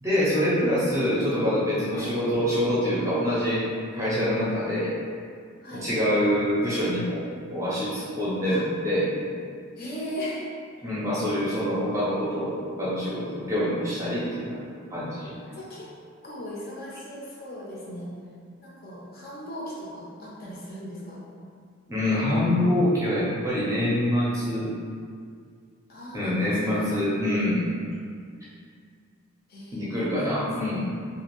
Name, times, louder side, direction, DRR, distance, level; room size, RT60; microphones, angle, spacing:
voice 1, 0.0-3.6 3.9-4.9 5.8-9.1 10.8-14.6 14.9-15.3 21.9-24.7 26.1-27.6 29.7-30.9, left 1 dB, 15° right, -9 dB, 0.6 m, -25 dB
voice 2, 4.1-4.4 5.6-5.9 8.4-8.6 9.8-10.5 15.5-15.9 16.2-18.1 18.6-21.2 25.9-26.9 29.5-29.8 30.2-30.3, equal, 45° left, -6 dB, 0.5 m, -38 dB
2.5 x 2.4 x 2.9 m, 2.2 s
head